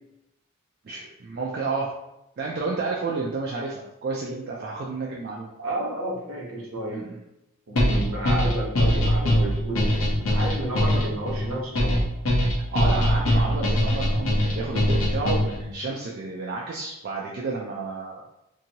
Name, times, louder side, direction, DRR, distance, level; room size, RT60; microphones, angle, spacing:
voice 1, 0.8-1.9 2.4-5.5 6.9-7.2 12.5-18.2, right 3 dB, 45° right, -3 dB, 0.3 m, -31 dB
voice 2, 5.6-7.0 7.7-12.0, right 1 dB, 65° right, -3 dB, 0.9 m, -31 dB
sound 1, 7.8-15.7, equal, 65° left, 0.8 m, -22 dB
2.8 x 2.6 x 2.7 m, 0.87 s
head